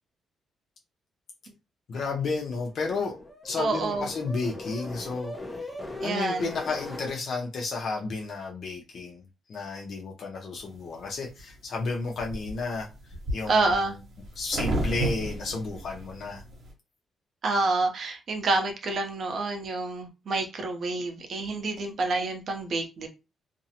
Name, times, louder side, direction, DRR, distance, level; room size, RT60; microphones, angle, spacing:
voice 1, 1.9-3.2 3.4-5.3 6.0-12.9 13.3-14.0 14.4-16.4, left 4 dB, 60° left, 0.6 m, -32 dB
sound 1, 2.5-7.1, left 2 dB, 5° left, 0.7 m, -40 dB
voice 2, 3.6-4.1 6.0-6.5 13.5-14.0 17.4-23.1, right 3 dB, 55° right, 0.6 m, -28 dB
sound 2, 10.7-11.4 11.9-16.7, right 2 dB, 70° right, 1.0 m, -33 dB
2.5 x 2.0 x 2.8 m
cardioid pair, 110°, 0 cm